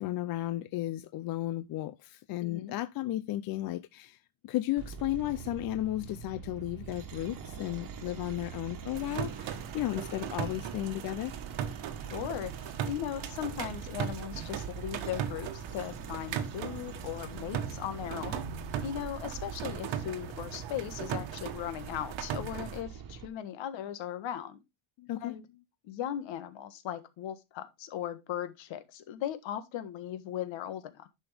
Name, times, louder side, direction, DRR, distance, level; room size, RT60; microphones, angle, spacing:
voice 1, 0.0-11.3 25.0-25.4, left 15 dB, 50° left, 0.5 m, -34 dB
voice 2, 2.4-2.7 12.1-18.4 18.8-24.6 25.2-25.4 25.8-31.1, left 10 dB, 65° left, 1.6 m, -38 dB
sound 1, 4.8-23.3, right 7 dB, 40° right, 1.5 m, -44 dB
sound 2, 8.9-22.8, right 9 dB, 65° right, 1.4 m, -38 dB
10.5 x 6.1 x 3.4 m
cardioid pair, 160°, 49 cm